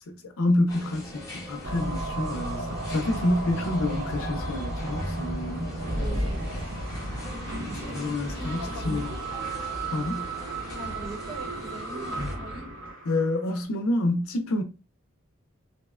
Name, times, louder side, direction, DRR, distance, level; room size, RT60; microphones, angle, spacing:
voice 1, 0.1-5.7 7.9-9.2 9.9-10.3 13.0-14.6, left 1 dB, 75° left, 0.5 m, -28 dB
sound 1, 0.7-12.4, left 1 dB, 15° left, 0.8 m, -42 dB
sound 2, 1.6-13.6, right 1 dB, 60° right, 1.0 m, -33 dB
voice 2, 6.0-6.8 7.7-8.0 8.3-9.2 10.6-12.7, right 1 dB, 25° right, 0.8 m, -41 dB
2.7 x 2.1 x 2.3 m
head